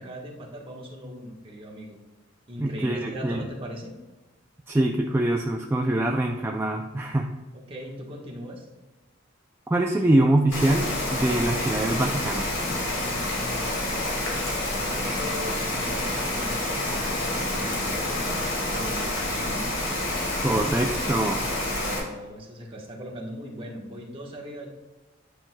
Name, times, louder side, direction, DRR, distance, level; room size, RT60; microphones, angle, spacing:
voice 1, 0.0-2.0 2.5-4.0 7.5-8.7 14.7-19.7 21.7-24.7, equal, 25° right, -2 dB, 1.2 m, -39 dB
voice 2, 2.6-3.4 4.7-7.4 9.7-12.5 20.4-21.5, right 1 dB, 10° right, 1 dB, 0.3 m, -24 dB
Rain, 10.5-22.0, left 1 dB, 80° left, 2.3 m, -28 dB
10.0 x 5.9 x 2.2 m, 1.2 s
head